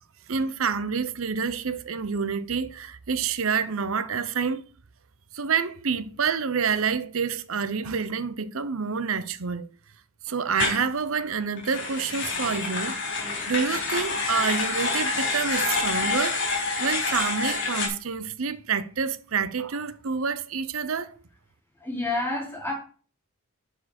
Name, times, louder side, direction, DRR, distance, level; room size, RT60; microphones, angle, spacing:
voice 1, 0.3-4.6 5.3-9.7 10.2-13.0 13.5-21.2, right 6 dB, 70° right, 0.7 m, -28 dB
sound 1, 10.6-10.8 11.6-17.9, left 4 dB, 55° left, 3.4 m, -27 dB
voice 2, 21.8-22.7, left 2 dB, 10° left, 4.7 m, -29 dB
11.0 x 5.0 x 4.3 m
head